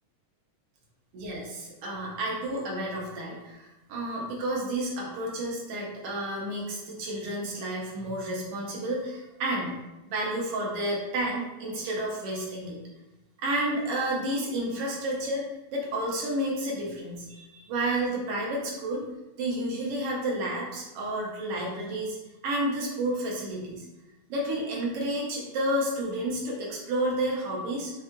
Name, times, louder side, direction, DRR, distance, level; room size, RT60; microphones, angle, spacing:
voice 1, 1.1-9.8 10.1-12.8 13.4-15.5 15.7-19.0 19.4-22.2 22.4-23.8 24.3-27.9, right 1 dB, 65° right, -3 dB, 1.6 m, -31 dB
5.5 x 2.4 x 3.7 m, 1.0 s
omnidirectional pair, 3.4 m